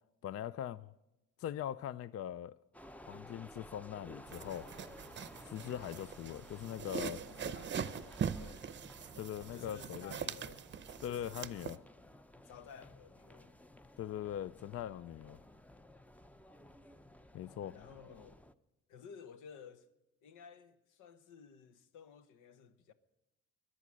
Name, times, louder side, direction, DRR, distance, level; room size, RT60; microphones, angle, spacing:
voice 1, 0.2-0.9 1.4-2.5 3.0-4.7 5.5-7.2 9.2-10.2 11.0-11.8 14.0-15.4 17.3-17.7, left 10 dB, 50° left, 0.4 m, -41 dB
sound 1, 2.7-18.5, left 1 dB, 5° left, 0.6 m, -56 dB
sound 2, 4.3-11.8, right 7 dB, 40° right, 0.7 m, -42 dB
voice 2, 7.2-8.7 9.5-10.6 11.0-11.6 12.4-13.5 17.7-18.4 18.9-19.9 20.2-22.9, left 6 dB, 90° left, 1.0 m, -55 dB
21.0 x 11.0 x 6.2 m
cardioid pair, 90°, 30 cm